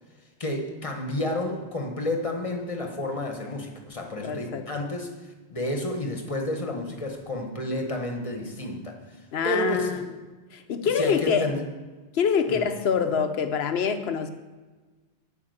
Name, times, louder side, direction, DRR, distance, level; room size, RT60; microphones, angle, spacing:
voice 1, 0.4-10.0 10.9-11.7 12.5-12.7, left 1 dB, 30° left, 3 dB, 1.3 m, -31 dB
voice 2, 4.2-4.7 9.3-10.1 10.5-11.5 12.1-14.3, left 6 dB, 70° left, 9 dB, 1.0 m, -25 dB
9.6 x 5.8 x 7.8 m, 1.3 s
omnidirectional pair, 1.1 m